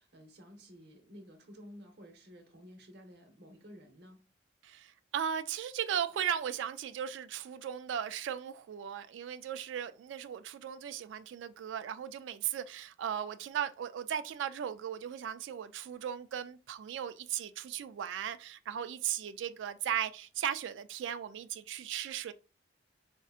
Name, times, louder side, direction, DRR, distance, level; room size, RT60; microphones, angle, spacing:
voice 1, 0.0-4.2, equal, 60° right, 0.9 m, -53 dB
voice 2, 4.6-22.3, right 9 dB, 85° right, 0.3 m, -37 dB
4.3 x 2.7 x 2.4 m
head